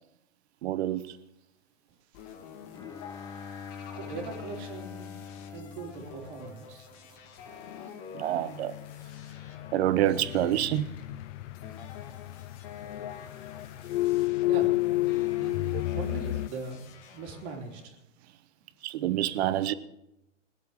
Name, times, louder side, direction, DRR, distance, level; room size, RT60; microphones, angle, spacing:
voice 1, 0.6-1.1 8.1-8.7 9.7-10.9 18.8-19.7, right 13 dB, 55° right, 1.1 m, -27 dB
sound 1, 2.1-17.9, left 7 dB, 40° left, 2.2 m, -48 dB
Bowed string instrument, 2.7-7.1, left 6 dB, 10° left, 0.7 m, -44 dB
voice 2, 4.0-5.2 5.5-6.9 14.4-14.7 15.3-16.8 17.1-18.0, right 4 dB, 40° right, 3.4 m, -40 dB
sound 2, 8.2-16.5, left 18 dB, 65° left, 0.5 m, -31 dB
21.0 x 8.1 x 6.6 m
hypercardioid pair, 140°, 38 cm